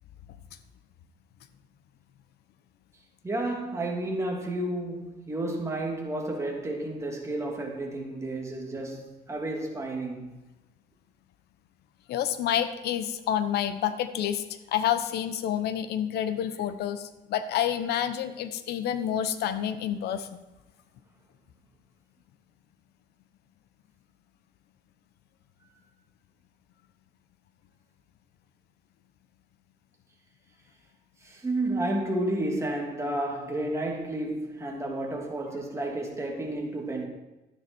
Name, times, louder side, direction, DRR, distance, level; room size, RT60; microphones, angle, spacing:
voice 1, 3.2-10.3 31.2-37.1, right 1 dB, 15° right, 2.9 m, -31 dB
voice 2, 12.1-20.3, left 10 dB, 75° left, 1.1 m, -29 dB
12.5 x 10.5 x 4.5 m
cardioid pair, 110°, 17 cm